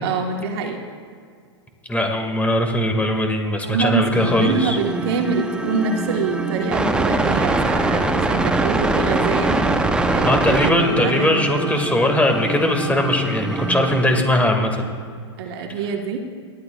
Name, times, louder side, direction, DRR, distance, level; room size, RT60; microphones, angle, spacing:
voice 1, 0.0-0.8 3.6-11.4 15.4-16.2, right 4 dB, 55° right, 3 dB, 1.7 m, -25 dB
voice 2, 1.9-4.8 10.2-14.9, left 1 dB, 10° left, 3 dB, 2.4 m, -20 dB
sound 1, 4.1-14.2, right 2 dB, 5° right, 0.9 m, -23 dB
29.5 x 12.0 x 2.5 m, 2.1 s
hypercardioid pair, 110°, 15 cm